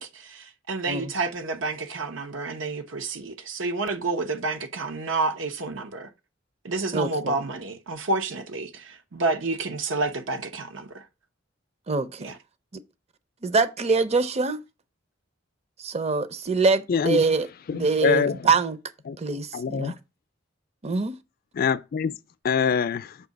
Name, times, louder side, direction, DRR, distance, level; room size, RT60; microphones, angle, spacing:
voice 1, 0.0-6.1 6.6-11.0 12.2-12.4, right 3 dB, 90° right, 0.9 m, -29 dB
voice 2, 6.9-7.3 11.9-12.3 13.4-14.6 15.8-17.5 17.7-18.8 19.2-19.9 20.8-21.1, right 4 dB, 35° right, 0.6 m, -24 dB
voice 3, 16.9-17.2 17.7-18.5 19.1-19.2 19.5-20.0 21.5-22.2 22.4-23.2, left 6 dB, 50° left, 0.4 m, -25 dB
6.7 x 2.8 x 5.2 m
head